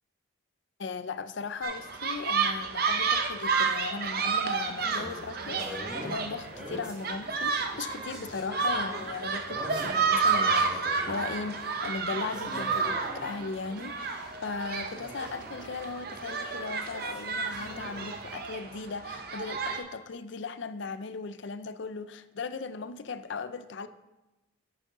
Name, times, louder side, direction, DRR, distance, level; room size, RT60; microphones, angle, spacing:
voice 1, 0.8-23.9, left 4 dB, 60° left, 12 dB, 0.5 m, -38 dB
sound 1, 1.6-19.8, right 5 dB, 45° right, 0.7 m, -31 dB
sound 2, 4.7-16.2 16.5-18.5, equal, 5° right, 1.8 m, -45 dB
9.1 x 8.2 x 3.7 m, 1.0 s
head